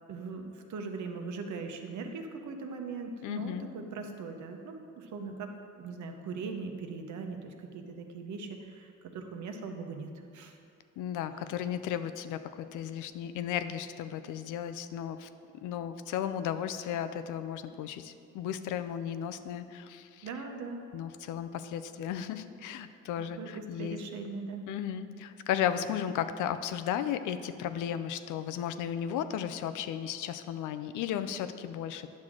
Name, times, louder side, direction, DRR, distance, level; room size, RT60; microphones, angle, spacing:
voice 1, 0.1-5.5 5.8-10.6 20.2-20.8 23.4-24.7, right 4 dB, 70° right, 4 dB, 0.9 m, -40 dB
voice 2, 3.2-3.6 11.0-15.3 15.6-20.3 20.9-24.0 24.7-32.2, left 9 dB, 85° left, 11 dB, 0.5 m, -35 dB
9.6 x 6.2 x 3.7 m, 2.5 s
cardioid pair, 90°, 30 cm